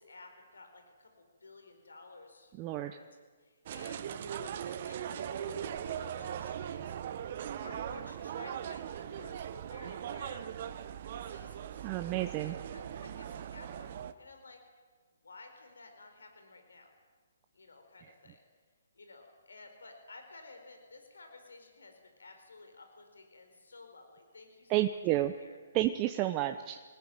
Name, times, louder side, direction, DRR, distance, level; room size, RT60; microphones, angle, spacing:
voice 1, 0.0-3.1 3.4-7.0 7.6-10.5 11.1-11.9 12.4-14.7 15.2-16.9 17.5-18.4 18.9-24.9 25.4-25.6 26.2-26.3, left 3 dB, 80° left, 5 dB, 4.5 m, -54 dB
voice 2, 2.6-3.0 11.8-12.6 24.7-25.3 25.7-26.8, right 14 dB, 25° right, 6 dB, 0.9 m, -30 dB
sound 1, 3.7-14.1, right 9 dB, 45° right, 1.2 m, -40 dB
23.5 x 19.0 x 9.0 m, 1.5 s
hypercardioid pair, 140°, 0 cm